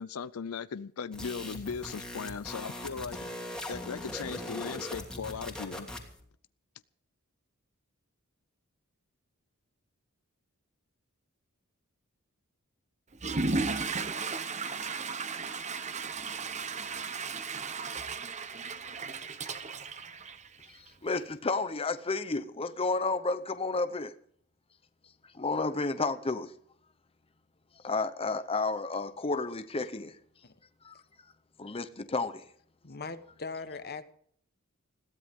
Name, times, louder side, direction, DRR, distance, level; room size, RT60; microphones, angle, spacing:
voice 1, 0.0-3.2 3.7-5.9, left 6 dB, 85° left, 0.5 m, -38 dB
sound 1, 1.1-6.2, left 1 dB, 5° left, 2.9 m, -40 dB
Water / Toilet flush, 13.1-20.9, right 4 dB, 35° right, 1.0 m, -35 dB
voice 2, 20.7-24.1 25.3-26.5 27.8-30.2 30.8-31.0 31.6-32.4, left 3 dB, 25° left, 0.8 m, -31 dB
voice 3, 32.8-34.0, left 4 dB, 50° left, 1.2 m, -40 dB
21.0 x 15.5 x 3.7 m
head